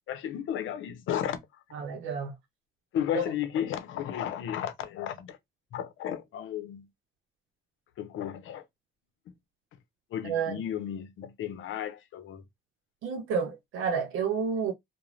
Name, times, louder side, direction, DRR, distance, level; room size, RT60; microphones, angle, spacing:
voice 1, 0.1-1.4 2.9-5.4 5.7-6.9 8.0-8.6 10.1-12.4, left 10 dB, 80° left, 0.6 m, -33 dB
voice 2, 1.7-2.4 3.1-3.2 10.2-10.6 13.0-14.7, right 5 dB, 85° right, 0.6 m, -30 dB
2.5 x 2.1 x 3.1 m
cardioid pair, 90°, 20 cm